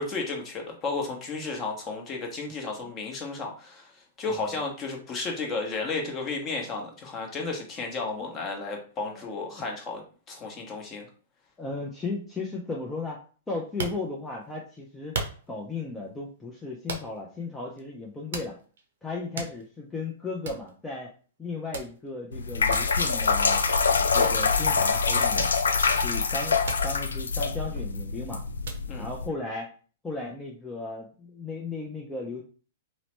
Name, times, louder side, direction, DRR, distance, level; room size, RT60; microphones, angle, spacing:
voice 1, 0.0-3.9 4.2-11.1 28.9-29.1, left 3 dB, 30° left, 1 dB, 0.9 m, -33 dB
voice 2, 9.1-9.6 11.6-13.2 13.5-15.2 15.5-18.5 19.0-21.1 21.4-23.6 24.0-25.5 26.0-28.4 29.0-29.7 30.0-32.4, left 3 dB, 10° left, -2 dB, 0.5 m, -35 dB
sound 1, 13.6-14.5 15.1-15.7 16.9-17.3 17.8-17.9 18.3-18.9 19.2-19.9 20.2-20.3 20.4-20.7 21.7-22.1 22.7-23.0 24.2-24.5 25.4-26.0 26.7-26.9 27.3-28.1 28.6-28.9, right 4 dB, 70° right, 0.6 m, -36 dB
sound 2, 22.3-29.3, left 5 dB, 85° left, 0.3 m, -25 dB
2.9 x 2.1 x 3.0 m, 0.39 s
hypercardioid pair, 115°, 0 cm